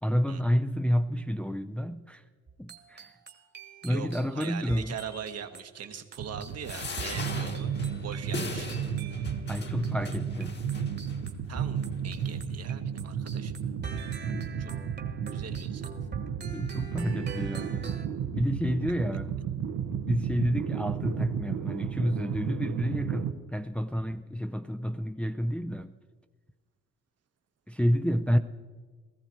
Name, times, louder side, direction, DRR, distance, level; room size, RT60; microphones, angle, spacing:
voice 1, 0.0-2.2 2.6-3.1 3.8-4.9 9.5-10.6 14.3-14.4 16.5-17.9 18.4-19.3 20.1-25.9 27.7-28.4, equal, 5° left, 0.5 m, -29 dB
sound 1, 2.5-12.7 13.0-18.1, right 5 dB, 35° right, 1.5 m, -45 dB
voice 2, 3.8-7.7 8.0-8.7 11.5-13.6 14.6-14.7 15.3-15.9, right 8 dB, 55° right, 1.2 m, -41 dB
sound 2, 6.2-23.3, right 8 dB, 75° right, 1.0 m, -33 dB
sound 3, 6.6-11.2 11.8-11.9 12.2-12.3, left 3 dB, 35° left, 1.4 m, -40 dB
17.0 x 14.0 x 4.4 m
cardioid pair, 90°, 30 cm